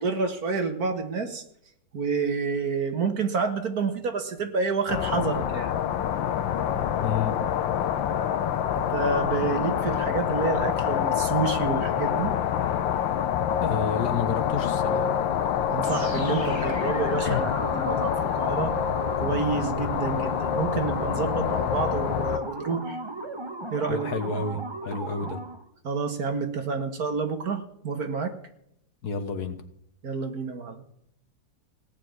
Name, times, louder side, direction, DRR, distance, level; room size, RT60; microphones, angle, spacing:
voice 1, 0.0-1.4 1.9-5.7 8.8-12.3 15.7-18.7 19.2-23.0 23.7-24.1 25.8-28.3 30.0-30.8, right 4 dB, 55° right, 6 dB, 1.9 m, -29 dB
sound 1, 4.9-22.4, left 9 dB, 90° left, 1.5 m, -26 dB
voice 2, 7.0-7.4 13.6-15.1 17.3-17.4 23.9-25.4 29.0-29.6, left 5 dB, 60° left, 8 dB, 1.7 m, -30 dB
sound 2, 15.8-25.7, right 2 dB, 15° right, 1.3 m, -36 dB
17.0 x 6.7 x 9.5 m, 0.73 s
omnidirectional pair, 2.0 m